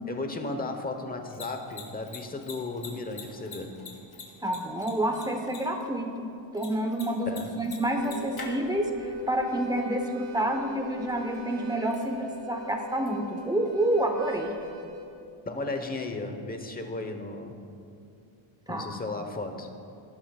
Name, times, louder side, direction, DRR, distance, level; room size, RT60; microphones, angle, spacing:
voice 1, 0.0-3.8 7.3-7.6 15.5-17.6 18.7-19.7, left 2 dB, 20° left, 5 dB, 1.0 m, -35 dB
Mechanisms, 1.1-14.7, left 4 dB, 50° left, 2.5 m, -49 dB
voice 2, 4.4-6.3 6.5-14.5 18.7-18.9, right 1 dB, 10° right, 3 dB, 1.1 m, -28 dB
Harmonica, 7.7-15.1, left 2 dB, 75° right, 3.3 m, -41 dB
18.5 x 11.5 x 2.4 m, 2.5 s
cardioid pair, 120°, 48 cm